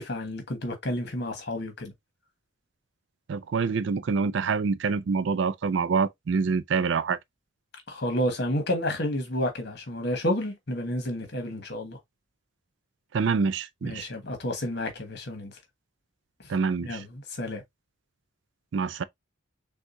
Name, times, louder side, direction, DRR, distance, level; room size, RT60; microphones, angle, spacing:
voice 1, 0.0-1.9 7.9-12.0 13.8-15.5 16.8-17.6, left 1 dB, 55° left, 1.4 m, -30 dB
voice 2, 3.3-7.2 13.1-14.1 16.5-17.0 18.7-19.0, right 5 dB, 60° right, 0.4 m, -26 dB
6.2 x 2.4 x 2.6 m
head